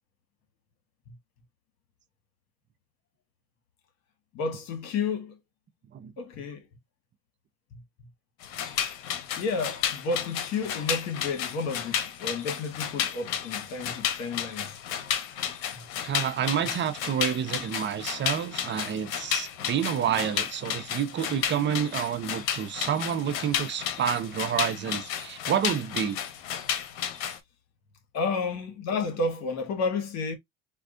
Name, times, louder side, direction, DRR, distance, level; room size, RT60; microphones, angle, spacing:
voice 1, 4.3-5.4 6.2-6.7 7.7-7.8 9.4-14.8 15.7-15.8 28.1-30.3, left 4 dB, 60° left, 1.4 m, -31 dB
sound 1, 8.4-27.4, left 9 dB, 85° left, 0.8 m, -32 dB
voice 2, 16.0-26.2, right 9 dB, 40° right, 0.6 m, -29 dB
4.3 x 2.3 x 2.5 m
supercardioid pair, 100°, 30 cm